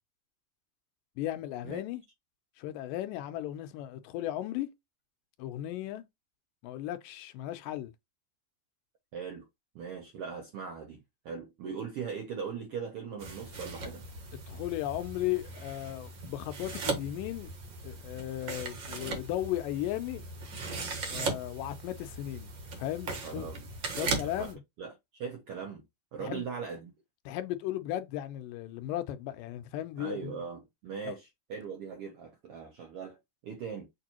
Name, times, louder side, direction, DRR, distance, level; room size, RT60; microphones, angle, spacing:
voice 1, 1.2-2.0 2.6-4.7 5.4-6.0 6.6-7.9 14.5-17.5 17.8-20.2 21.1-22.5 22.8-23.5 23.9-24.6 26.2-26.5 27.3-30.4 31.0-31.2, left 13 dB, 90° left, 2.4 m, -36 dB
voice 2, 9.1-9.5 9.7-14.0 23.1-23.7 24.2-24.5 24.8-25.8 26.1-26.9 30.0-33.9, right 6 dB, 75° right, 1.3 m, -40 dB
sound 1, 13.2-24.5, right 3 dB, 55° right, 1.4 m, -38 dB
6.9 x 2.6 x 2.9 m
omnidirectional pair, 3.8 m